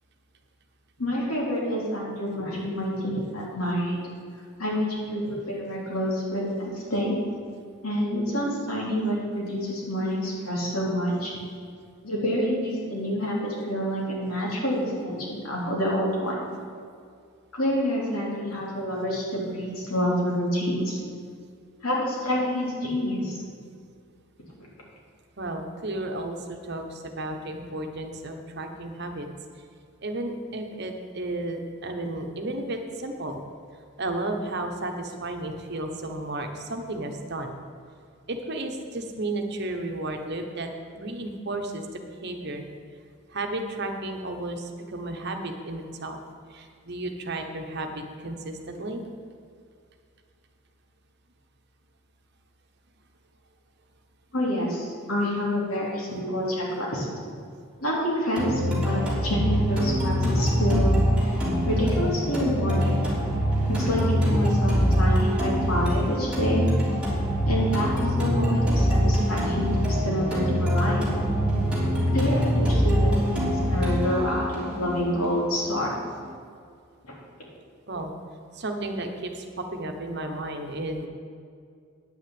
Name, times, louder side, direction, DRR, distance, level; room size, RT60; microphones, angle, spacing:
voice 1, 1.0-4.0 4.6-7.2 7.8-11.3 12.0-16.5 17.5-21.0 21.8-23.4 54.3-57.0 57.8-61.0 61.6-63.0 63.7-66.7 67.4-71.0 72.1-75.9 77.0-77.1, equal, 85° left, -4 dB, 3.4 m, -27 dB
voice 2, 25.4-29.3 30.0-33.4 34.0-37.5 38.3-40.7 40.9-42.6 43.3-46.2 46.5-49.0 77.9-78.1 78.5-81.1, right 2 dB, 50° right, 4 dB, 1.1 m, -33 dB
sound 1, 58.4-76.3, equal, 5° right, 3.2 m, -24 dB
9.8 x 6.4 x 8.8 m, 2.2 s
head